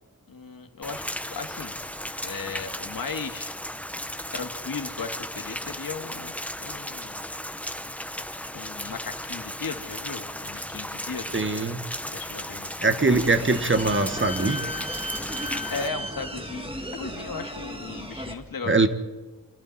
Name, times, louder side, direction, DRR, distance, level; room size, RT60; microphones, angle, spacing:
voice 1, 0.3-1.8 2.2-3.5 4.3-6.3 6.6-7.2 8.5-11.3 12.1-13.1 15.7-18.9, left 5 dB, 70° left, 6 dB, 2.1 m, -36 dB
Rain, 0.8-15.9, left 1 dB, 5° left, 0.9 m, -36 dB
voice 2, 11.3-11.8 12.8-14.6 18.7-18.9, right 3 dB, 35° right, 9 dB, 1.5 m, -22 dB
sound 1, 13.1-18.3, equal, 15° right, 2.3 m, -35 dB
29.5 x 25.5 x 4.3 m, 1.3 s
wide cardioid pair, 115°, 35 cm